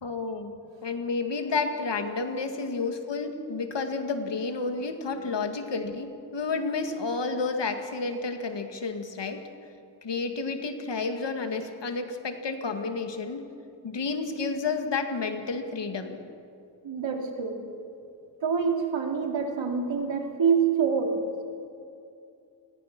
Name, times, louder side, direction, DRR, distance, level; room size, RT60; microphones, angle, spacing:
voice 1, 0.0-9.4 10.0-13.4 13.8-16.2, left 4 dB, 70° left, 6 dB, 2.2 m, -31 dB
voice 2, 16.8-17.6 18.4-21.2, right 6 dB, 85° right, 3 dB, 2.8 m, -26 dB
27.5 x 20.5 x 6.1 m, 2.5 s
wide cardioid pair, 80°, 44 cm